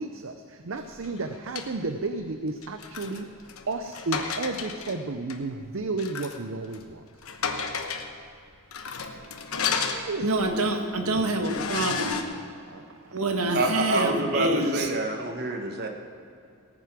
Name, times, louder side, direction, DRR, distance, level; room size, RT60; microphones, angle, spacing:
voice 1, 0.0-3.3 3.7-7.0 9.9-10.3 11.1-11.2 12.7-13.2, right 3 dB, 60° right, 7 dB, 0.6 m, -33 dB
sound 1, 1.0-1.7 2.6-5.0 5.3-5.4 6.0-6.4 6.7-6.9 7.2-8.1 8.7-10.5 10.9-11.0 11.4-12.2, left 5 dB, 75° left, 1.1 m, -32 dB
voice 2, 10.2-12.2 13.1-14.9, right 2 dB, 85° right, 4 dB, 1.6 m, -26 dB
voice 3, 13.5-15.9, right 2 dB, 45° right, 4 dB, 1.3 m, -27 dB
17.5 x 9.5 x 6.0 m, 2.5 s
head